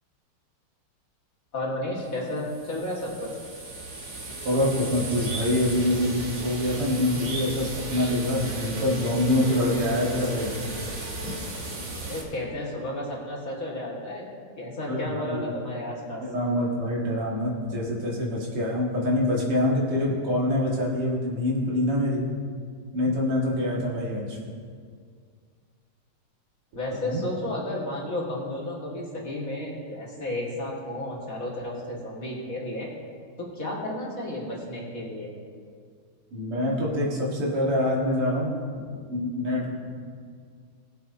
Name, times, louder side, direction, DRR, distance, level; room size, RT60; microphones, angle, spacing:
voice 1, 1.5-3.3 12.1-14.3 14.6-16.2 26.7-32.9 33.4-35.3, left 1 dB, 40° left, -4 dB, 2.0 m, -32 dB
sound 1, 2.2-12.2, right 2 dB, 45° right, 1.6 m, -35 dB
voice 2, 4.4-10.5 11.2-11.3 14.9-15.6 16.2-22.2 22.9-24.4 27.0-27.2 36.3-38.6 39.1-39.7, left 1 dB, 90° right, -4 dB, 2.9 m, -25 dB
18.5 x 7.6 x 2.7 m, 2.1 s
omnidirectional pair, 2.4 m